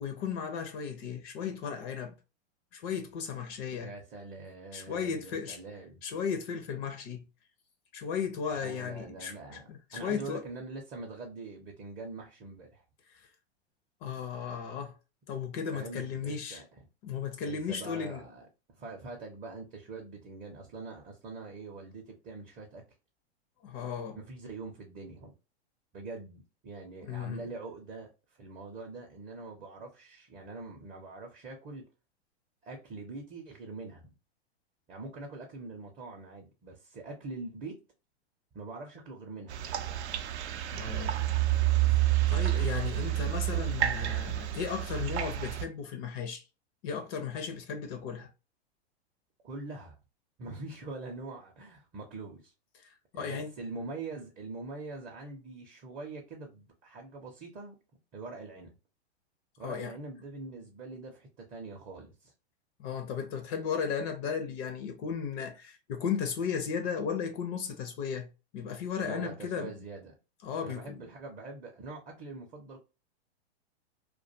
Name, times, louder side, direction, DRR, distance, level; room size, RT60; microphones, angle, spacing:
voice 1, 0.0-2.2 2.7-3.9 4.7-5.6 6.0-7.2 7.9-10.4 13.1-13.2 14.0-14.9 15.3-16.6 17.0-18.2 23.6-24.2 27.1-27.4 40.7-41.2 42.3-46.4 46.8-48.3 52.8-53.5 59.6-59.9 62.8-68.3 68.5-69.7 70.4-70.8, left 6 dB, 35° left, 0.4 m, -35 dB
voice 2, 3.8-6.0 8.6-12.8 15.7-16.9 17.4-22.8 24.1-25.3 25.9-28.1 28.4-31.8 32.6-34.1 34.9-37.8 38.5-39.6 49.4-50.0 50.4-52.5 53.1-57.8 58.1-58.7 59.6-62.3 69.0-70.1 70.6-72.8, right 3 dB, 25° right, 0.5 m, -43 dB
sound 1, 39.5-45.7, right 14 dB, 85° right, 0.5 m, -29 dB
2.4 x 2.2 x 2.5 m
hypercardioid pair, 120°, 33 cm